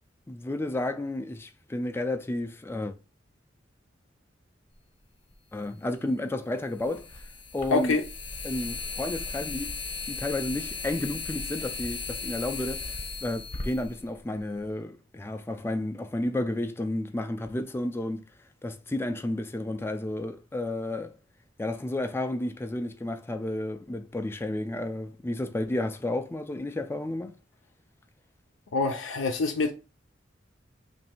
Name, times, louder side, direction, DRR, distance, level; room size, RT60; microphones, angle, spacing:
voice 1, 0.3-2.9 5.5-7.3 7.5-7.9 8.4-9.7 10.1-12.9 13.2-18.3 18.6-21.2 21.6-27.3, left 1 dB, 10° left, 0.3 m, -32 dB
sound 1, 5.3-5.4 6.8-14.7, left 4 dB, 30° left, 0.9 m, -36 dB
voice 2, 7.7-8.0 28.7-29.7, left 3 dB, 85° left, 0.5 m, -25 dB
3.1 x 2.6 x 4.3 m
head